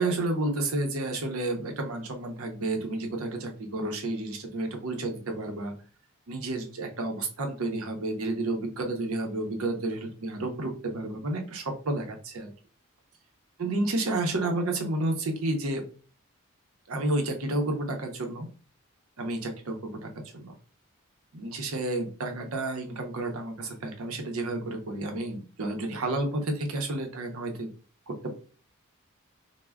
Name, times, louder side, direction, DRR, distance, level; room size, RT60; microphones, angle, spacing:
voice 1, 0.0-5.7 6.3-12.5 13.6-15.8 16.9-18.5 19.2-20.6 21.3-27.7 28.1-28.3, right 2 dB, 80° right, 3 dB, 0.6 m, -31 dB
2.2 x 2.1 x 3.4 m, 0.39 s
head